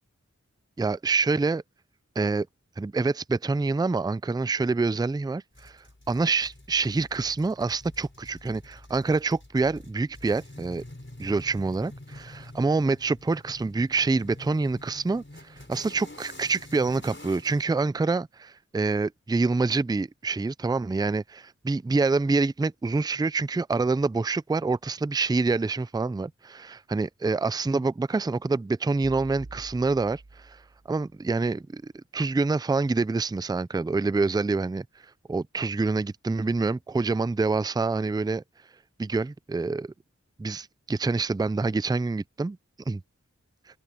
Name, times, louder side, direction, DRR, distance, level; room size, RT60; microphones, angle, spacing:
voice 1, 0.8-1.6 2.2-2.5 2.8-10.8 11.2-30.6 30.9-34.8 35.3-38.4 39.0-39.9 40.4-42.6 42.9-43.0, right 3 dB, 15° right, 0.4 m, -26 dB
sound 1, 5.5-17.7, left 1 dB, 40° left, 4.8 m, -47 dB
sound 2, 29.0-31.1, right 2 dB, 70° right, 5.1 m, -46 dB
wide cardioid pair, 45°, 30 cm